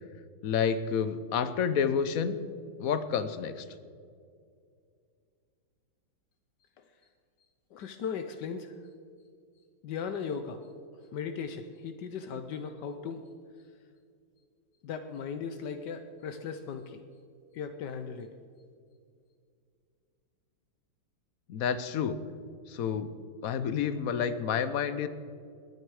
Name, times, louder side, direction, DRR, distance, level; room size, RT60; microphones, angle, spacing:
voice 1, 0.4-2.4 2.8-3.6 21.5-22.2 22.7-23.1 23.4-25.1, left 7 dB, 60° left, 12 dB, 1.1 m, -29 dB
voice 2, 7.7-8.7 9.8-10.6 11.1-13.2 14.8-17.0 17.5-18.3, left 6 dB, 75° left, 7 dB, 1.4 m, -37 dB
21.5 x 9.6 x 4.8 m, 2.3 s
omnidirectional pair, 1.9 m